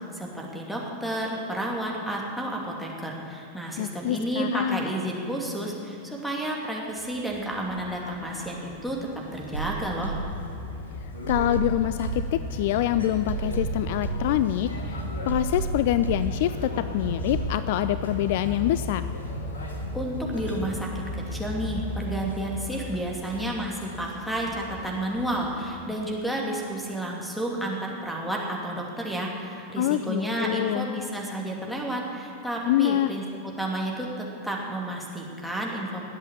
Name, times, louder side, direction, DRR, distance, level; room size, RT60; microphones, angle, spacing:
voice 1, 0.1-9.0 9.3-10.1 19.9-33.2 33.6-36.0, right 1 dB, ahead, -1 dB, 2.6 m, -31 dB
voice 2, 3.8-4.9 11.3-19.1 29.8-30.9 32.7-33.1, left 13 dB, 50° left, 13 dB, 0.3 m, -26 dB
sound 1, 6.9-26.1, left 1 dB, 70° left, 1.8 m, -36 dB
sound 2, 9.5-10.8 11.3-12.8 13.3-14.8 15.3-16.8 17.3-17.5, right 4 dB, 90° right, 1.1 m, -33 dB
20.5 x 8.1 x 7.2 m, 2.6 s
figure-of-eight pair, 90°, 0 cm